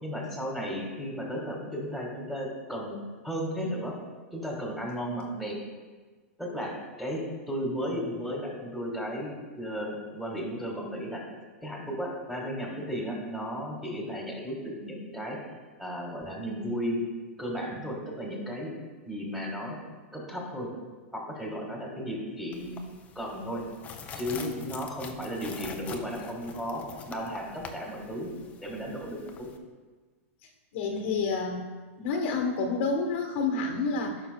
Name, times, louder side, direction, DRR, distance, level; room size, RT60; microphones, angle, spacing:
voice 1, 0.0-3.0 3.2-3.9 4.3-5.6 6.4-7.2 7.5-11.2 11.6-15.4 15.8-17.0 17.4-18.7 19.0-19.8 20.1-20.7 21.1-22.9 23.1-23.6 24.2-26.8 27.1-28.3 28.6-29.5 30.9-31.1, equal, 5° right, -2 dB, 1.5 m, -34 dB
sound 1, 22.5-29.6, left 5 dB, 20° left, 0.5 m, -45 dB
voice 2, 30.7-31.7 32.0-34.2, left 4 dB, 55° left, 3 dB, 1.2 m, -29 dB
14.0 x 5.9 x 2.2 m, 1.3 s
supercardioid pair, 150°, 8 cm